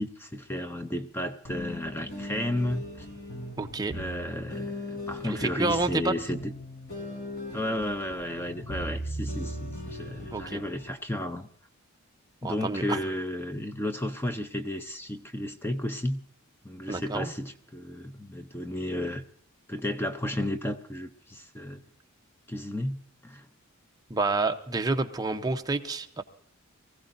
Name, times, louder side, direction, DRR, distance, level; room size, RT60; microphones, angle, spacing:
voice 1, 0.0-3.1 3.9-6.5 7.5-11.5 12.4-16.2 16.6-19.2 19.7-21.8 22.5-23.5, left 1 dB, 10° left, 8 dB, 0.6 m, -33 dB
sound 1, 1.4-10.9, equal, 45° left, 5.3 m, -38 dB
voice 2, 3.6-3.9 5.2-6.1 10.3-10.6 12.4-13.0 16.9-17.3 24.1-26.2, right 3 dB, 20° right, 6 dB, 0.8 m, -29 dB
23.5 x 15.5 x 2.6 m, 0.64 s
head